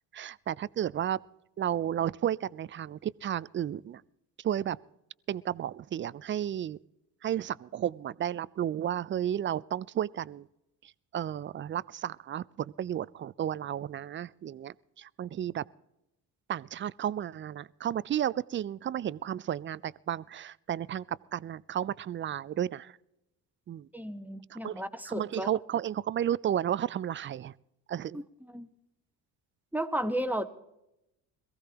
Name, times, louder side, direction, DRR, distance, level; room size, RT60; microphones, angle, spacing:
voice 1, 0.1-1.2 1.6-4.0 4.4-4.8 5.3-6.8 7.2-10.5 10.8-15.6 16.5-23.0 23.7-23.9 24.5-27.5 27.9-28.2, right 10 dB, 25° right, 0.4 m, -33 dB
voice 2, 23.9-25.5 28.5-28.7 29.7-30.5, right 1 dB, 5° right, 1.2 m, -33 dB
22.0 x 15.5 x 2.9 m
hypercardioid pair, 55°, 46 cm